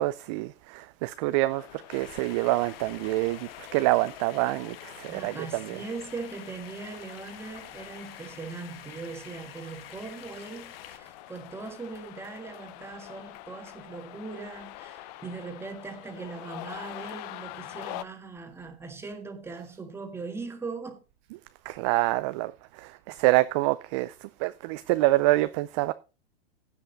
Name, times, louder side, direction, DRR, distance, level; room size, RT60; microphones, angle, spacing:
voice 1, 0.0-5.8 21.7-25.9, right 19 dB, 30° right, 0.4 m, -26 dB
sound 1, 1.5-18.0, left 15 dB, 40° left, 0.7 m, -46 dB
sound 2, 1.9-11.0, left 10 dB, 65° left, 1.5 m, -47 dB
voice 2, 5.1-21.0, right 4 dB, 10° right, 1.6 m, -40 dB
16.0 x 5.7 x 4.0 m
hypercardioid pair, 145°, 32 cm